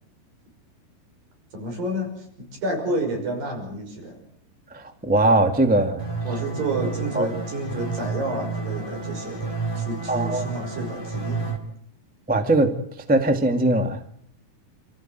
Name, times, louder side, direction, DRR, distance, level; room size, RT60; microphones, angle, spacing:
voice 1, 1.5-4.2 6.2-11.5, right 1 dB, 65° right, 3 dB, 7.7 m, -30 dB
voice 2, 4.7-6.0 7.1-7.3 10.1-10.5 12.3-12.7 13.1-14.0, right 2 dB, 15° right, 7 dB, 0.3 m, -20 dB
sound 1, 6.0-11.6, right 4 dB, 5° left, 3.2 m, -30 dB
28.5 x 14.5 x 9.2 m, 0.67 s
omnidirectional pair, 4.4 m